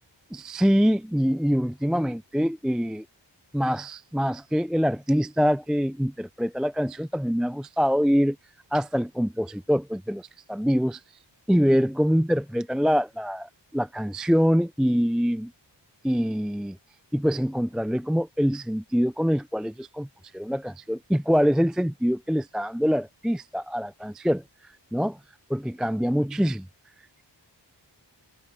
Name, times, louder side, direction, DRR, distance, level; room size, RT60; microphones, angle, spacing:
voice 1, 0.3-3.1 3.5-8.4 8.7-11.0 11.5-15.5 16.0-16.8 17.1-20.1 20.3-24.4 24.9-25.2 25.5-26.7, equal, ahead, 0.3 m, -24 dB
wide cardioid pair, 65°, 44 cm